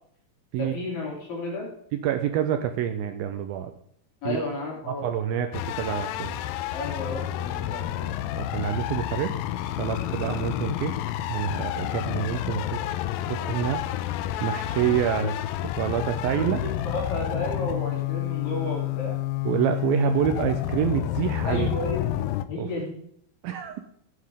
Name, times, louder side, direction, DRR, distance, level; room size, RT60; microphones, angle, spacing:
voice 1, 0.6-1.7 4.2-5.1 6.7-8.1 16.3-19.2 21.4-22.2 22.5-23.0, left 2 dB, 55° left, -3 dB, 5.0 m, -32 dB
voice 2, 1.9-3.7 4.3-4.4 4.9-5.5 5.8-6.4 8.4-9.3 9.8-10.9 11.3-12.8 13.3-13.8 14.4-16.7 19.5-21.7 22.6-22.7 23.4-23.8, right 10 dB, 80° right, 7 dB, 2.3 m, -27 dB
sound 1, 5.5-22.5, left 14 dB, 90° left, 2.1 m, -29 dB
14.5 x 9.7 x 3.7 m, 0.70 s
omnidirectional pair, 4.7 m